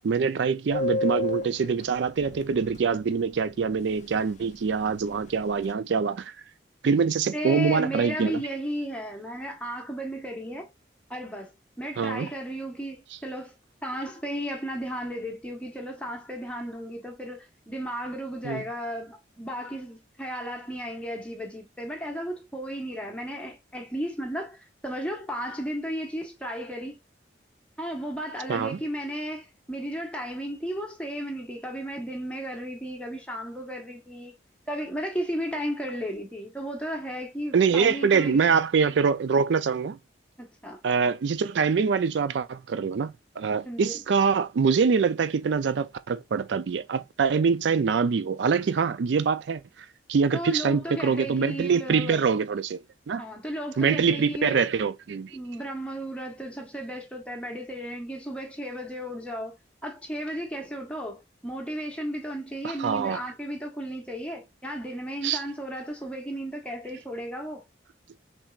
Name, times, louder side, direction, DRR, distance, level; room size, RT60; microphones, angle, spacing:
voice 1, 0.0-6.4 6.8-8.4 12.0-12.3 18.4-18.6 28.5-28.8 37.5-40.0 40.8-52.8 53.1-53.2 53.8-55.4 62.6-63.2 65.2-65.4, right 5 dB, 70° right, 0.4 m, -24 dB
Subway metro underground, 0.7-2.9 3.2-3.3 3.5-3.7 4.0-4.5 4.7-5.7, left 3 dB, 40° left, 0.4 m, -31 dB
voice 2, 7.3-10.7 11.1-11.5 11.8-13.5 13.8-27.0 27.8-34.3 34.7-38.5 40.4-40.8 43.6-44.0 50.3-52.2 53.2-54.7 55.3-59.6 59.8-67.6, equal, 5° left, 1.2 m, -34 dB
5.8 x 3.4 x 2.4 m
head